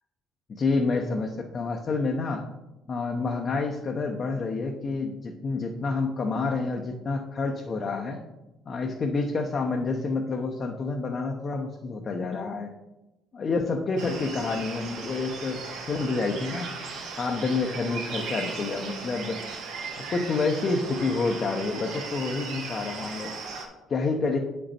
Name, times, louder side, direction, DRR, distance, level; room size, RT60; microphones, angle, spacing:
voice 1, 0.5-2.4 2.9-8.2 8.7-12.7 13.3-16.8 17.2-19.4 20.1-23.3 23.9-24.4, left 3 dB, 40° left, 1 dB, 0.8 m, -28 dB
sound 1, 14.0-23.7, right 4 dB, 80° right, 1.6 m, -37 dB
8.0 x 5.3 x 4.3 m, 0.98 s
cardioid pair, 115°, 0 cm